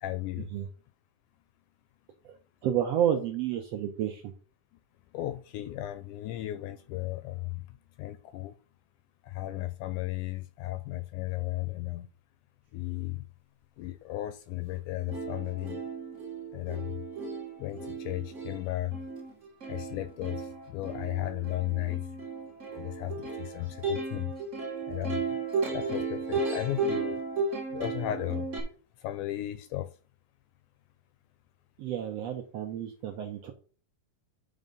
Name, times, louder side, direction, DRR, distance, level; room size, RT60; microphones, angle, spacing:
voice 1, 0.0-0.5 5.1-8.6 9.2-12.1 12.7-13.2 13.8-15.8 16.5-17.0 17.6-19.0 19.7-22.4 22.8-24.4 24.9-25.4 25.7-27.2 27.7-28.5 29.0-29.9, left 15 dB, 80° left, 1.9 m, -35 dB
voice 2, 2.6-4.3 31.8-33.5, right 10 dB, 75° right, 1.5 m, -30 dB
Plucked string instrument, 14.7-14.8 15.1-28.6, right 3 dB, 40° right, 1.1 m, -35 dB
9.2 x 3.8 x 5.3 m
omnidirectional pair, 3.9 m